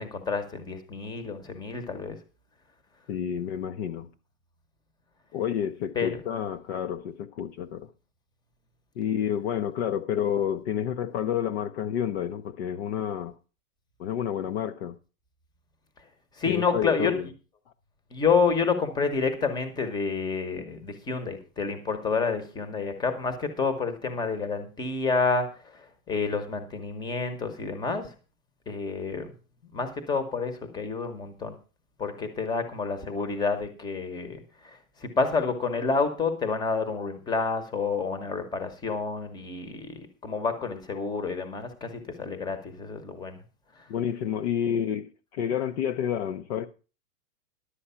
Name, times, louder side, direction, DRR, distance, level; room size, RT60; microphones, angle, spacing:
voice 1, 0.0-2.2 5.9-6.2 16.4-17.2 18.1-25.8 26.1-28.1 28.7-29.3 29.7-31.5 32.0-34.4 35.0-43.4, left 4 dB, 10° left, 1.0 m, -29 dB
voice 2, 3.1-4.1 5.3-7.9 9.0-13.3 14.0-15.0 16.5-17.3 43.9-46.7, left 9 dB, 45° left, 0.7 m, -29 dB
11.5 x 7.8 x 5.6 m
supercardioid pair, 165°, 45 cm